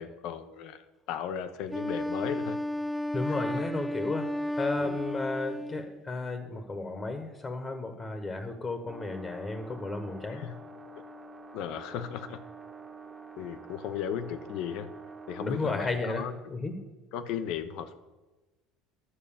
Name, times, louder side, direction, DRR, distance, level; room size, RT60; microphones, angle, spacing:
voice 1, 0.0-2.6 3.5-3.6 4.8-5.0 10.3-10.5 11.5-12.4 13.4-14.9 15.3-16.3 17.1-17.9, left 9 dB, 65° left, 11 dB, 0.9 m, -36 dB
Wind instrument woodwind instrument, 1.7-6.0, left 1 dB, 5° left, 0.5 m, -33 dB
voice 2, 3.1-10.4 15.4-16.2 16.5-16.8, left 3 dB, 25° left, 7 dB, 1.3 m, -33 dB
sound 1, 8.9-15.9, right 3 dB, 20° right, 1.5 m, -47 dB
11.5 x 6.4 x 7.1 m, 1.2 s
supercardioid pair, 100°, 0 cm